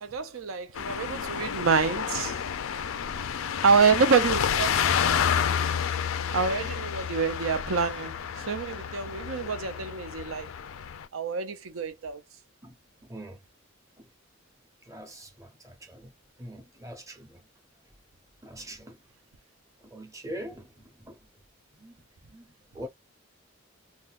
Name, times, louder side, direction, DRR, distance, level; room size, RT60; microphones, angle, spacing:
voice 1, 0.0-2.4 3.6-5.2 6.3-10.5 11.1-12.2, right 5 dB, 85° right, 0.6 m, -27 dB
sound 1, 0.7-11.1, left 8 dB, 85° left, 0.4 m, -30 dB
voice 2, 13.0-13.4 14.0-14.1 14.8-16.1 16.4-17.5 18.4-19.0 19.8-21.2 21.7-22.9, equal, 15° right, 0.7 m, -43 dB
3.6 x 2.3 x 2.4 m
head